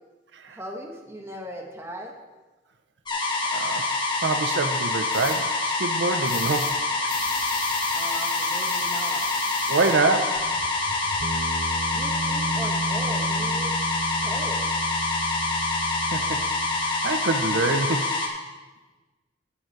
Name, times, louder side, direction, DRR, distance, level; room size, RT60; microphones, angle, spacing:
voice 1, 0.5-2.1 7.9-9.3 11.9-13.8 14.2-14.8, equal, 15° right, 1 dB, 1.3 m, -38 dB
sound 1, 3.1-18.3, left 2 dB, 25° left, 1.6 m, -26 dB
voice 2, 3.5-7.1 9.7-10.5 16.1-16.5 16.8-18.2, right 3 dB, 80° right, 8 dB, 0.7 m, -26 dB
sound 2, 5.1-5.4 6.2-6.8 7.1-9.9, left 5 dB, 50° left, 2.0 m, -36 dB
sound 3, 10.4-17.8, right 2 dB, 35° right, 0.4 m, -34 dB
14.0 x 7.2 x 4.6 m, 1.2 s
head